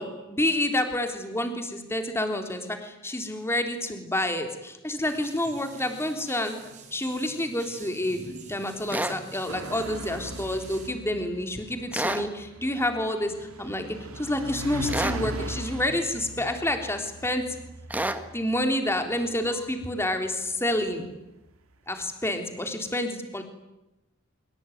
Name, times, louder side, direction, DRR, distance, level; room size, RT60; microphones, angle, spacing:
voice 1, 0.0-6.6 6.9-8.2 8.5-13.3 13.6-13.9 14.2-17.5 18.3-21.1 21.9-23.4, left 1 dB, 10° left, 5 dB, 3.6 m, -28 dB
sound 1, 5.0-10.9, right 3 dB, 35° right, 6.6 m, -47 dB
sound 2, 8.9-9.2 11.9-12.3 14.9-15.2 17.9-18.2, right 1 dB, 10° right, 1.6 m, -28 dB
sound 3, 9.5-20.4, right 1 dB, 90° right, 2.2 m, -39 dB
25.5 x 24.0 x 9.4 m, 0.95 s
head